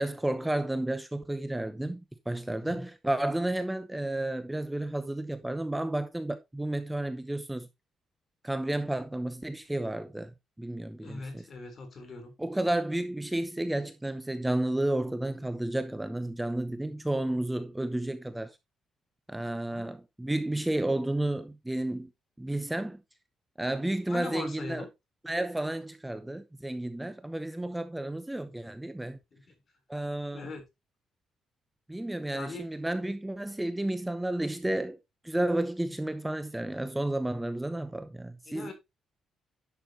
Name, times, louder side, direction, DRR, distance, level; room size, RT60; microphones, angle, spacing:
voice 1, 0.0-7.7 8.4-10.3 10.6-11.4 12.4-18.6 19.3-22.1 22.4-23.0 23.6-24.9 25.2-29.2 29.9-30.5 31.9-35.0 35.2-38.7, right 1 dB, 10° right, 0.9 m, -32 dB
voice 2, 11.0-12.3 19.7-19.9 24.1-24.9 28.4-28.5 29.3-29.5 30.3-30.6 32.3-32.6 38.5-38.7, left 3 dB, 45° left, 3.6 m, -41 dB
10.5 x 6.8 x 2.9 m
cardioid pair, 90°, 0 cm